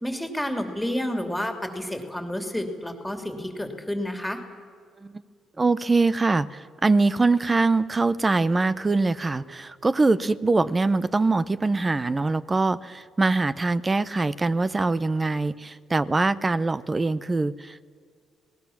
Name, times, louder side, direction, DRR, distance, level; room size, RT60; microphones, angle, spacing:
voice 1, 0.0-4.4, left 1 dB, 5° left, 4 dB, 3.0 m, -30 dB
voice 2, 5.6-17.9, right 3 dB, 25° right, 15 dB, 0.9 m, -23 dB
27.5 x 19.0 x 7.3 m, 2.1 s
cardioid pair, 90°, 0 cm